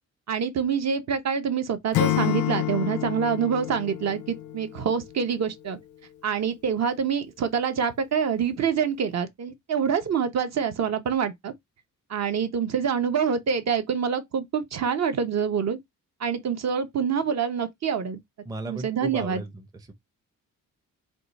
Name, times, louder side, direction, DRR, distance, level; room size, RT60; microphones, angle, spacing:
voice 1, 0.3-5.8 6.2-11.5 12.1-15.8 16.2-18.2 18.7-19.4, right 7 dB, 50° right, 0.8 m, -26 dB
Acoustic guitar / Strum, 1.9-5.0, left 12 dB, 65° left, 0.5 m, -28 dB
voice 2, 18.4-19.9, right 2 dB, 10° right, 0.5 m, -36 dB
4.7 x 2.3 x 4.0 m
wide cardioid pair, 175°, 33 cm